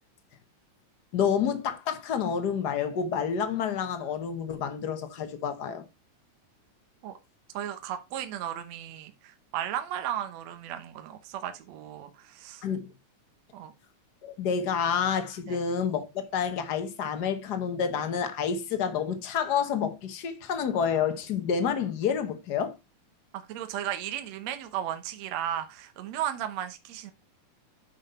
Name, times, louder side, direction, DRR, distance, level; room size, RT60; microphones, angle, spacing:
voice 1, 1.1-5.8 12.6-12.9 14.2-22.7, left 7 dB, 70° left, 0.9 m, -29 dB
voice 2, 7.5-12.7 13.5-13.7 15.5-15.6 23.3-27.1, right 11 dB, 65° right, 2.1 m, -35 dB
9.2 x 5.6 x 4.2 m
omnidirectional pair, 3.5 m